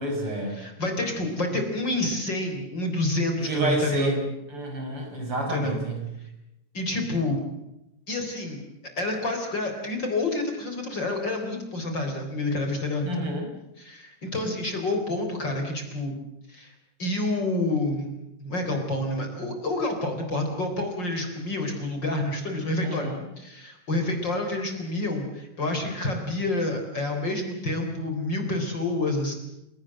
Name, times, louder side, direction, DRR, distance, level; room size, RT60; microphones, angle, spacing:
voice 1, 0.0-0.6 3.5-6.0 13.0-13.5 22.8-23.1, right 1 dB, 45° right, 3 dB, 6.4 m, -29 dB
voice 2, 0.6-4.3 5.5-5.8 6.7-7.4 8.1-8.6 9.0-13.3 13.8-16.1 16.5-16.7 17.0-18.1 18.4-23.1 23.4-29.3, left 2 dB, 35° left, 4 dB, 4.4 m, -28 dB
29.5 x 18.0 x 7.6 m, 0.90 s
omnidirectional pair, 3.5 m